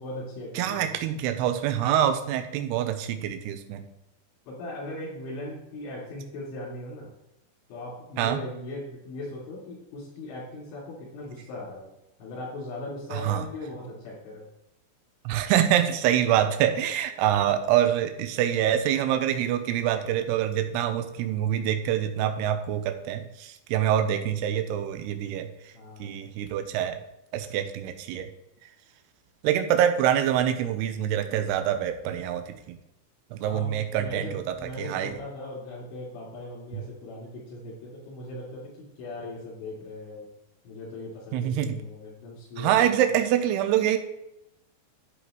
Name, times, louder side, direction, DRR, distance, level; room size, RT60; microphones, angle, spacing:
voice 1, 0.0-1.1 4.5-7.1 7.7-11.9 12.2-14.5 25.7-26.2 33.4-40.3 40.6-43.1, left 1 dB, 80° left, -6 dB, 5.1 m, -39 dB
voice 2, 0.6-3.9 8.2-8.4 13.1-13.5 15.3-25.5 26.0-27.0 27.3-28.3 29.4-32.8 33.3-34.4 34.8-35.1 36.7-36.8 41.3-41.8 42.6-44.0, right 10 dB, 80° right, 7 dB, 2.5 m, -25 dB
11.0 x 8.0 x 3.1 m, 0.89 s
omnidirectional pair, 5.4 m